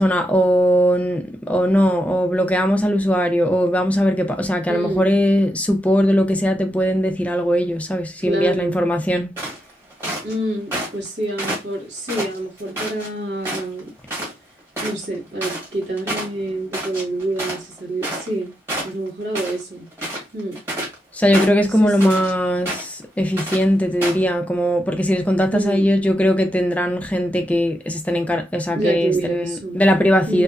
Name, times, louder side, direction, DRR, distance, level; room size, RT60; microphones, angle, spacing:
voice 1, 0.0-9.3 21.1-30.4, equal, 10° left, 0.3 m, -19 dB
voice 2, 4.7-5.1 8.2-8.8 10.2-13.9 14.8-18.5 18.8-19.9 20.3-20.6 21.8-22.2 25.5-25.8 28.7-29.8 30.3-30.4, right 1 dB, 85° right, 1.3 m, -27 dB
sound 1, 9.4-10.3 10.7-11.1 11.4-13.1 13.4-13.8 14.1-14.3 14.6-18.4 18.7-19.6 19.9-21.0 21.3-22.3 22.7-23.0 23.4-23.6 24.0-24.3, right 1 dB, 10° right, 1.1 m, -28 dB
2.6 x 2.2 x 2.3 m
head